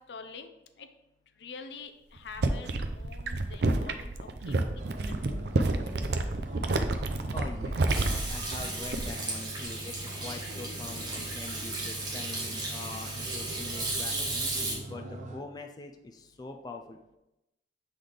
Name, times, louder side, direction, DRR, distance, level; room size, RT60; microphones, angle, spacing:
voice 1, 0.1-0.5 0.8-0.9 1.4-2.7 2.9-5.6, left 5 dB, 75° left, 8 dB, 0.5 m, -46 dB
sound 1, 2.2-9.3 9.6-10.0, right 2 dB, 65° right, 0.5 m, -29 dB
sound 2, 4.8-15.4, right 1 dB, 45° right, 0.9 m, -42 dB
voice 2, 7.3-17.0, left 3 dB, 20° left, 4 dB, 0.4 m, -44 dB
Hands / Sink (filling or washing), 7.9-14.7, right 2 dB, 25° right, 1.4 m, -35 dB
7.5 x 4.0 x 3.4 m, 0.92 s
head